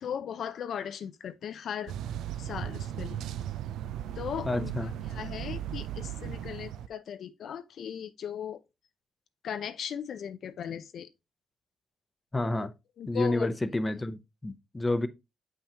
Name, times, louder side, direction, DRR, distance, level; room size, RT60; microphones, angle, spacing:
voice 1, 0.0-1.9 2.4-3.2 4.2-4.7 5.1-8.6 9.4-11.1 13.0-13.5, left 8 dB, 65° left, 0.5 m, -37 dB
sound 1, 1.9-6.9, right 10 dB, 85° right, 0.4 m, -36 dB
voice 2, 4.4-4.9 12.3-12.7 13.1-15.1, left 2 dB, 15° left, 0.6 m, -29 dB
7.2 x 5.7 x 2.8 m
cardioid pair, 90°, 0 cm